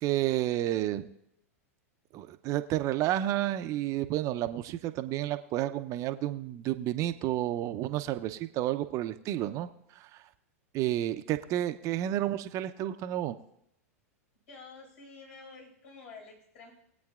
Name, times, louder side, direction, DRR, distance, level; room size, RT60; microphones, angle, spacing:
voice 1, 0.0-1.1 2.1-9.7 10.7-13.3, right 13 dB, 40° right, 9 dB, 0.6 m, -30 dB
voice 2, 14.5-16.7, left 4 dB, 60° left, -1 dB, 5.2 m, -49 dB
20.5 x 8.5 x 2.4 m, 0.77 s
hypercardioid pair, 100°, 8 cm